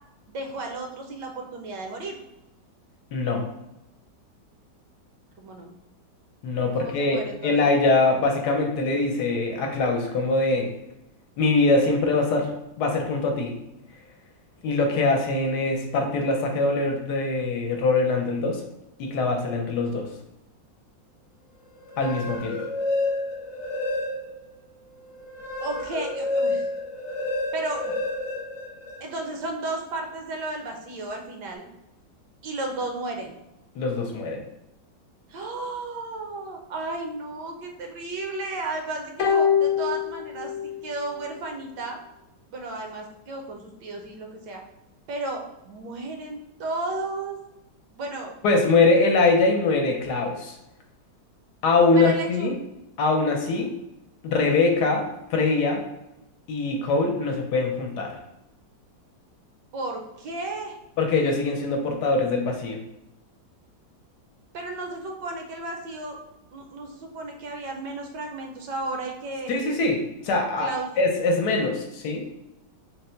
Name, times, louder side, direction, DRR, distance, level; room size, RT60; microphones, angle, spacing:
voice 1, 0.3-2.2 5.4-5.7 6.7-7.7 25.6-26.7 27.5-27.9 29.0-31.7 32.4-33.4 35.3-42.0 42.5-44.6 45.1-47.4 47.9-48.3 51.9-52.5 54.4-54.7 59.7-60.8 64.5-66.2 66.5-69.8 70.6-70.9, right 2 dB, 75° right, 2 dB, 1.3 m, -33 dB
voice 2, 3.1-3.5 6.4-10.7 11.4-13.5 14.6-18.6 19.0-20.1 22.0-22.5 33.7-34.4 48.4-50.5 51.6-52.5 53.0-53.7 54.2-55.0 55.3-55.8 56.5-58.1 61.0-62.8 69.5-70.7 71.0-72.2, left 3 dB, 70° left, 2 dB, 1.2 m, -23 dB
sound 1, 21.8-24.5 24.9-29.2, left 2 dB, 45° left, 1.0 m, -29 dB
sound 2, 39.2-40.8 41.1-41.2, left 7 dB, 85° left, 0.7 m, -23 dB
4.0 x 2.1 x 4.3 m, 0.90 s
omnidirectional pair, 1.9 m